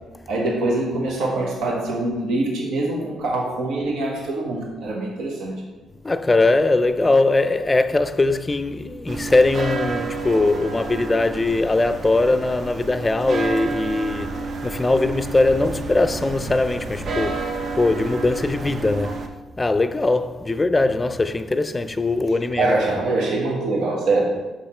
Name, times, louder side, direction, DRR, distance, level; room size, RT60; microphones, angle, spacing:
voice 1, 0.3-5.7 19.0-19.1 22.5-24.4, right 2 dB, 85° right, 1.2 m, -24 dB
voice 2, 6.0-19.2 19.6-22.7, left 2 dB, 20° left, 0.4 m, -21 dB
sound 1, 9.1-19.3, right 3 dB, 50° right, 0.6 m, -30 dB
5.7 x 4.9 x 4.3 m
cardioid pair, 90°, 0 cm